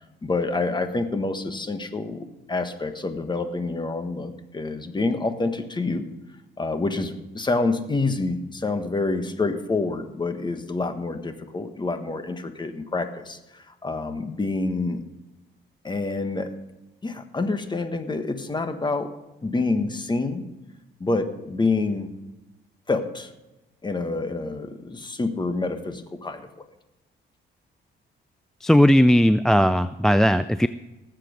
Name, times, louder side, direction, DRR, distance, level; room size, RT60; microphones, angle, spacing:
voice 1, 0.2-6.1 6.6-15.0 15.8-16.5 17.0-19.1 19.4-20.4 21.0-22.1 22.9-23.3 23.8-26.5, left 3 dB, 20° left, 8 dB, 1.4 m, -27 dB
voice 2, 28.6-30.7, equal, ahead, 13 dB, 0.3 m, -17 dB
18.5 x 7.7 x 5.2 m, 1.0 s
cardioid pair, 90°, 20 cm